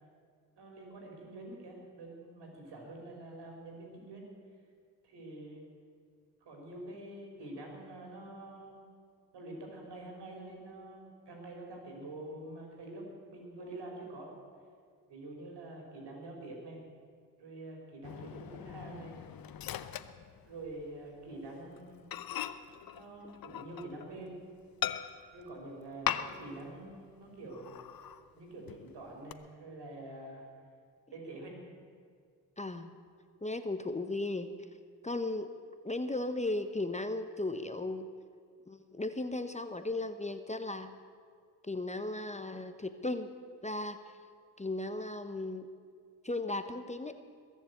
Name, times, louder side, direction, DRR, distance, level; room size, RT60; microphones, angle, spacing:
voice 1, 0.6-4.2 5.0-5.6 6.4-8.8 9.3-14.3 15.1-16.8 17.4-19.1 20.5-22.0 22.9-24.4 25.3-27.9 28.3-30.4 31.1-31.6, right 2 dB, 70° right, 0 dB, 4.8 m, -46 dB
Microwave oven, 18.0-20.9 21.2-21.4 21.8-21.9 22.1-24.2 24.8-25.4 26.0-26.6 26.9-27.0 27.5-28.2 28.7-29.3, left 10 dB, 55° left, 0.9 m, -39 dB
voice 2, 32.6-32.9 33.4-34.5 35.0-35.5 35.8-38.1 38.7-40.9 41.6-43.3 43.6-44.2 44.6-45.7 46.2-47.2, left 2 dB, 15° left, 9 dB, 1.0 m, -36 dB
21.5 x 7.4 x 8.2 m, 2.1 s
supercardioid pair, 50°, 43 cm